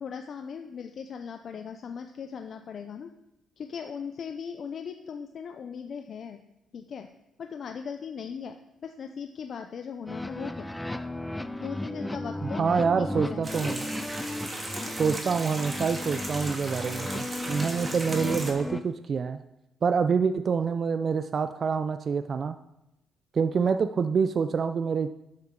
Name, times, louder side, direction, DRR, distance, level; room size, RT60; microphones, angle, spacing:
voice 1, 0.0-3.1 3.6-6.4 6.7-7.1 7.4-10.7 11.6-13.6 14.8-15.0, left 6 dB, 55° left, 6 dB, 0.6 m, -38 dB
sound 1, 10.1-18.8, left 1 dB, 10° left, 0.6 m, -35 dB
voice 2, 12.4-13.9 15.0-19.4 19.8-22.6 23.3-25.1, right 6 dB, 45° right, 10 dB, 0.4 m, -26 dB
sound 2, 13.4-18.5, right 1 dB, 25° right, 2.4 m, -37 dB
11.5 x 7.7 x 3.8 m, 0.90 s
cardioid pair, 90°, 0 cm